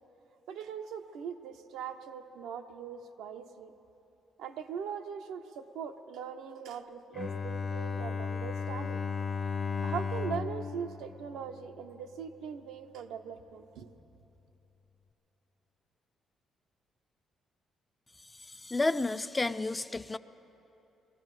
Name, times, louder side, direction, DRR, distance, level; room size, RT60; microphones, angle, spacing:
voice 1, 0.5-3.7 4.4-9.1 9.8-13.9, right 7 dB, 90° right, 6 dB, 0.7 m, -40 dB
Bowed string instrument, 7.1-12.1, left 5 dB, 40° left, 0.7 m, -35 dB
voice 2, 18.4-20.2, left 2 dB, 20° left, 12 dB, 0.4 m, -31 dB
21.5 x 14.0 x 4.8 m, 3.0 s
cardioid pair, 90°, 0 cm